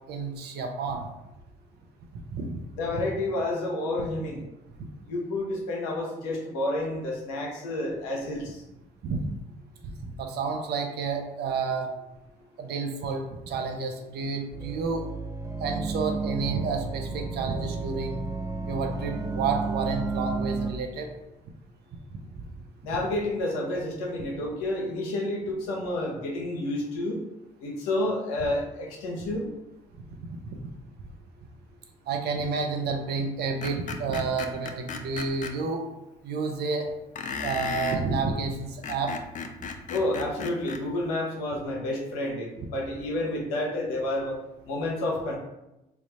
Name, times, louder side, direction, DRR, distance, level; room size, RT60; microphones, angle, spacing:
voice 1, 0.1-1.1 2.1-2.6 9.0-9.3 9.8-11.9 12.6-15.0 15.6-18.2 18.7-21.1 22.1-22.5 30.3-30.6 32.1-35.8 36.2-36.9 37.4-39.1, right 4 dB, 60° right, 3 dB, 0.7 m, -30 dB
voice 2, 2.8-4.4 5.0-8.6 22.8-27.2 27.6-29.5 39.9-44.4 44.7-45.4, left 1 dB, 85° left, -2 dB, 0.8 m, -30 dB
sound 1, 14.5-20.7, right 4 dB, 15° right, 0.5 m, -32 dB
Screech, 33.6-35.5 37.2-38.0 38.7-40.8, left 5 dB, 45° left, 0.5 m, -35 dB
3.4 x 2.4 x 4.2 m, 0.94 s
hypercardioid pair, 55°, 19 cm